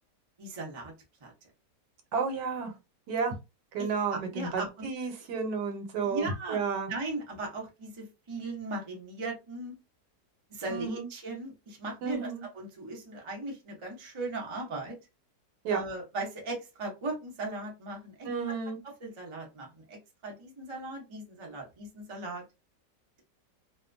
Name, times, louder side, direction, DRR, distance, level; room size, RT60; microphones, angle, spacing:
voice 1, 0.4-0.9 1.2-1.3 3.8-4.9 6.0-6.6 6.9-9.7 10.5-15.0 15.7-18.3 19.0-22.4, right 2 dB, 40° right, 0.4 m, -38 dB
voice 2, 2.1-2.7 3.1-3.4 3.7-6.9 10.7-11.1 12.0-12.4 15.6-15.8 18.2-18.8, right 5 dB, 75° right, 1.3 m, -32 dB
2.8 x 2.1 x 2.5 m
omnidirectional pair, 1.9 m